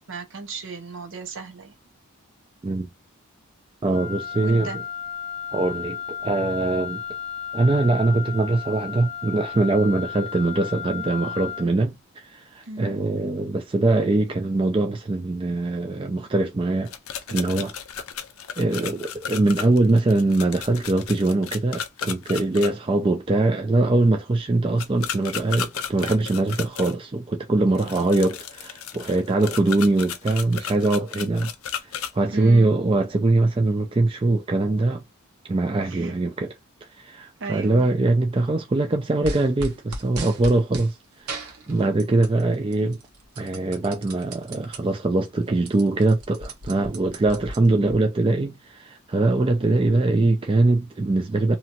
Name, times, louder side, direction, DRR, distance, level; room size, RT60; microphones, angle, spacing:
voice 1, 0.1-1.7 4.4-4.8 12.7-13.0 27.7-27.9 32.3-32.8 35.8-36.1 37.4-37.9, right 4 dB, 60° right, 0.8 m, -36 dB
voice 2, 3.8-4.8 5.5-7.0 7.5-16.9 17.3-17.7 18.6-31.5 32.1-35.0 35.5-36.6 37.0-43.0 43.4-51.6, right 2 dB, 25° right, 0.4 m, -22 dB
Wind instrument woodwind instrument, 3.9-11.7, left 8 dB, ahead, 1.1 m, -34 dB
sound 1, 16.9-22.7 24.8-26.9 27.8-32.1, left 8 dB, 70° left, 0.5 m, -34 dB
sound 2, 39.2-40.9 41.3-42.4 42.7-44.8 45.2-45.3 45.5-48.0, right 1 dB, 85° right, 1.0 m, -36 dB
2.8 x 2.3 x 2.9 m
head